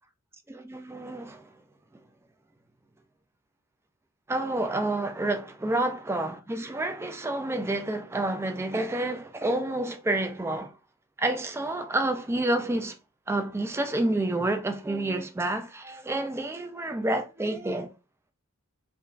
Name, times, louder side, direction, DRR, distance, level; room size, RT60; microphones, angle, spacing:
voice 1, 0.5-1.5 4.3-10.7 11.2-13.0 13.3-17.9, right 2 dB, 10° right, 0.4 m, -29 dB
3.7 x 2.2 x 2.5 m
head